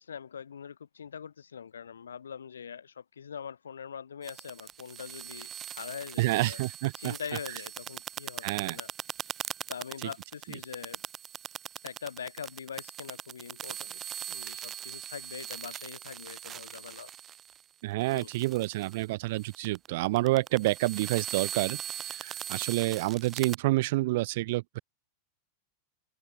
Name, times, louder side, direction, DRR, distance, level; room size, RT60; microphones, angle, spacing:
voice 1, 0.0-6.6 7.0-8.9 9.7-11.0 11.8-17.1 18.1-18.3, left 7 dB, 70° left, 5.8 m, -43 dB
sound 1, 4.2-17.6 18.0-19.0 19.4-23.6, right 10 dB, 25° right, 2.8 m, -41 dB
voice 2, 6.2-7.1 8.4-8.8 17.8-24.8, right 19 dB, 50° right, 7.0 m, -28 dB
open air
figure-of-eight pair, 90°, 0 cm